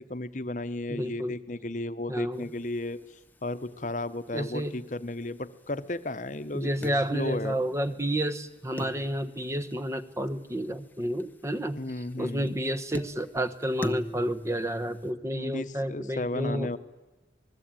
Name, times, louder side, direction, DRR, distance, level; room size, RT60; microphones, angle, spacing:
voice 1, 0.0-3.0 3.4-7.6 11.7-12.5 15.2-16.8, left 2 dB, 45° left, 12 dB, 1.1 m, -34 dB
voice 2, 0.9-1.4 2.1-2.4 4.3-4.7 6.5-11.8 12.2-16.7, equal, 15° right, 12 dB, 1.1 m, -30 dB
sound 1, 2.3-15.1, equal, 10° left, 0.8 m, -44 dB
27.0 x 20.5 x 9.1 m, 1.2 s
head